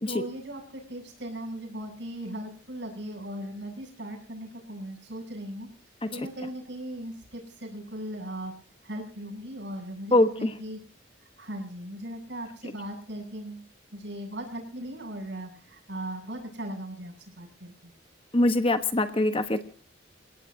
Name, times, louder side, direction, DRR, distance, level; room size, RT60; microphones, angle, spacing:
voice 1, 0.0-5.7 6.1-8.5 8.8-10.8 11.2-13.7 13.9-17.9, right 1 dB, 60° right, 2 dB, 7.8 m, -38 dB
voice 2, 10.1-10.5 18.3-19.6, left 1 dB, 25° left, 9 dB, 1.2 m, -23 dB
29.5 x 17.5 x 2.8 m, 0.40 s
head